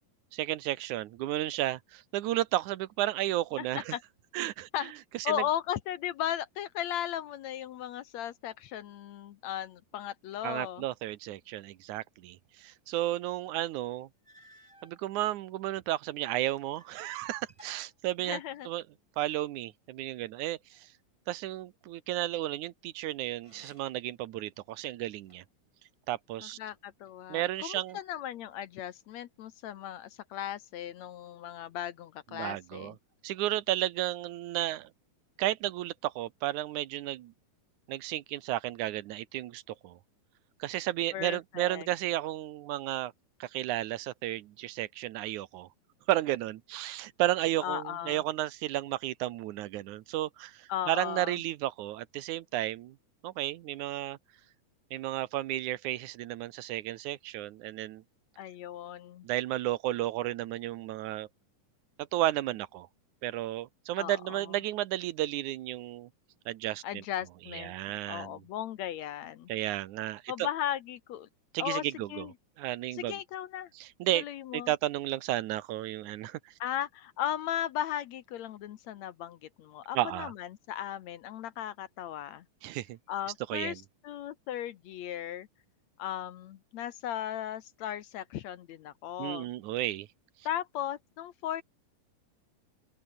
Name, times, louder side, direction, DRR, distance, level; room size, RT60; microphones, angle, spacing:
voice 1, 0.3-3.9 4.3-4.7 5.1-5.4 10.4-14.1 14.8-18.4 18.7-18.8 19.2-20.9 21.3-25.4 26.1-26.6 27.3-28.0 32.3-32.9 33.2-34.9 35.4-37.3 37.9-40.0 40.6-43.1 43.4-45.7 46.1-53.0 53.2-54.2 54.9-58.0 59.2-61.3 62.1-62.9 63.2-66.1 66.5-67.0 67.5-68.4 69.5-70.5 71.5-72.3 72.6-73.2 73.8-74.2 74.5-76.5 80.0-80.3 82.6-83.0 83.5-83.8 89.2-90.1, right 14 dB, 70° right, 2.1 m, -33 dB
voice 2, 3.6-4.0 4.7-4.9 5.2-10.8 18.2-18.7 26.4-33.0 41.1-41.9 47.6-48.2 50.7-51.4 58.4-59.3 64.0-64.4 66.8-67.7 68.1-69.5 70.3-71.3 71.6-71.8 72.1-72.3 72.9-73.7 74.1-74.7 76.6-82.5 83.1-85.5 86.0-89.5 90.5-91.6, left 11 dB, 65° left, 1.8 m, -36 dB
sound 1, 14.2-15.0 15.8-17.0 17.3-18.8 23.3-24.1 24.6-25.6 26.4-27.2 27.9-28.6, right 1 dB, 10° right, 7.6 m, -61 dB
open air
omnidirectional pair, 4.0 m